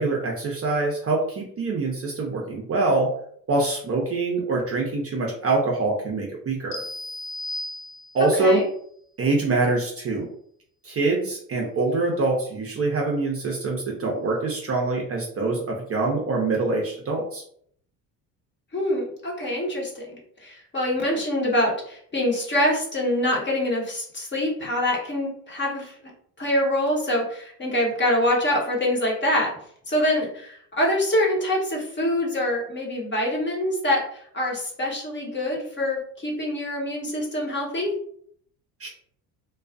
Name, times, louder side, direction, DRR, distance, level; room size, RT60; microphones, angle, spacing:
voice 1, 0.0-3.1 3.5-6.8 8.1-8.6 9.2-10.3 10.8-17.4 38.8-38.9, right 3 dB, 30° right, -1 dB, 0.6 m, -24 dB
sound 1, 6.7-8.4, left 1 dB, 50° left, 0.5 m, -35 dB
voice 2, 8.2-8.7 18.7-25.9 26.4-29.5 29.9-37.9, left 1 dB, 25° left, -2 dB, 0.9 m, -25 dB
2.3 x 2.3 x 2.4 m, 0.63 s
hypercardioid pair, 65°, 49 cm